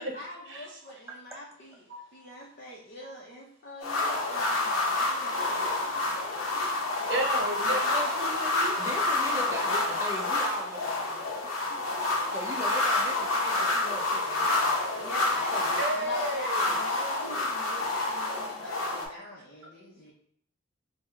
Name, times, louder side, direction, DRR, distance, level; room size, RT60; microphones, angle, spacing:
voice 1, 0.0-6.2 11.9-12.6 15.0-20.1, left 1 dB, 50° left, -3 dB, 0.6 m, -43 dB
sound 1, 3.8-19.1, left 2 dB, 85° left, 0.7 m, -28 dB
voice 2, 7.1-8.7 15.8-16.7 18.6-18.8, right 1 dB, 60° right, 0 dB, 0.8 m, -33 dB
voice 3, 8.8-11.8 12.3-14.9 15.3-15.8, right 1 dB, 15° right, -2 dB, 0.6 m, -39 dB
3.7 x 2.1 x 3.2 m, 0.67 s
head